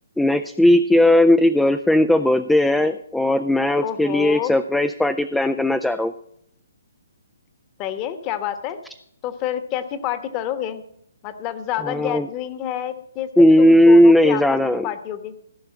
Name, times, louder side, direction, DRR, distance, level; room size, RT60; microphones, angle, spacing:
voice 1, 0.2-6.1 11.8-12.3 13.4-14.9, left 1 dB, 5° left, 9 dB, 0.4 m, -16 dB
voice 2, 3.8-4.5 7.8-8.8 9.2-10.8 11.2-14.6 14.8-15.3, left 11 dB, 25° left, 10 dB, 1.2 m, -28 dB
15.5 x 5.5 x 8.5 m, 0.71 s
figure-of-eight pair, 140°, 0 cm